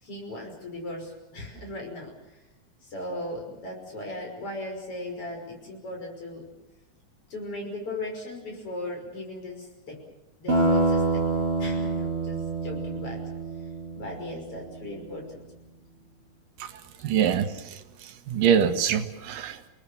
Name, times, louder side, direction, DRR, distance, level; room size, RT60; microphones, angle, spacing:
voice 1, 0.0-2.1 2.8-6.5 7.3-10.0 10.4-11.2 11.6-13.2 13.9-15.4, left 1 dB, 40° left, 1 dB, 6.8 m, -37 dB
sound 1, 10.5-14.8, right 3 dB, 40° right, 7.8 m, -26 dB
voice 2, 17.0-17.5 18.3-19.7, right 8 dB, 85° right, 8 dB, 3.0 m, -23 dB
30.0 x 19.5 x 7.2 m, 0.98 s
omnidirectional pair, 3.8 m